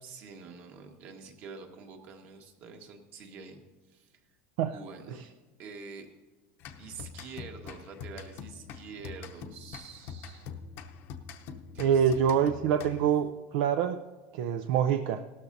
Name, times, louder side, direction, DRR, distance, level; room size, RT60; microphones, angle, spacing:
voice 1, 0.0-4.2 4.6-5.2 5.6-6.1 6.8-10.5 11.7-12.4, right 5 dB, 40° right, 4 dB, 1.5 m, -47 dB
sound 1, 6.6-13.3, left 6 dB, 45° left, 0.8 m, -44 dB
voice 2, 11.8-14.0 14.3-15.2, right 8 dB, 65° right, 7 dB, 0.5 m, -25 dB
17.5 x 13.0 x 2.7 m, 1.2 s
supercardioid pair, 165°, 5 cm